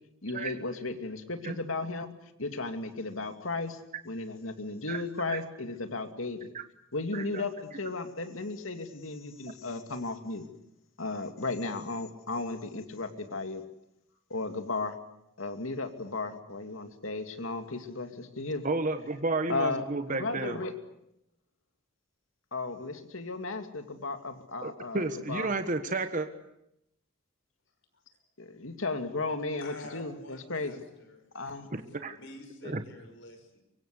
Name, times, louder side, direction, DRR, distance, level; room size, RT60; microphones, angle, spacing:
voice 1, 0.2-2.1 2.4-3.8 4.0-6.5 6.9-10.5 11.0-13.6 14.3-14.9 15.4-18.7 19.5-20.7 22.5-25.5 28.4-30.8 31.3-31.7, left 3 dB, 80° left, 7 dB, 2.6 m, -35 dB
voice 2, 7.1-7.4 18.6-20.6 24.6-26.3 31.7-32.2 32.6-32.8, right 3 dB, 40° right, 8 dB, 1.4 m, -32 dB
voice 3, 29.6-33.6, left 2 dB, 65° left, 7 dB, 5.9 m, -49 dB
24.0 x 24.0 x 8.2 m, 0.81 s
head